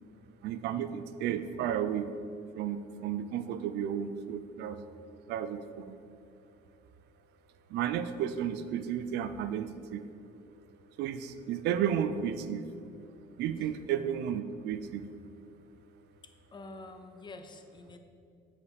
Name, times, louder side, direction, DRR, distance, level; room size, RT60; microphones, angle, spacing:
voice 1, 0.4-2.1 2.5-4.8 5.3-6.0 7.7-10.1 11.0-12.7 13.4-15.1, right 9 dB, 80° right, 11 dB, 0.5 m, -33 dB
voice 2, 16.5-18.0, left 2 dB, 25° left, 6 dB, 0.7 m, -47 dB
9.5 x 5.1 x 4.8 m, 2.5 s
cardioid pair, 110°, 17 cm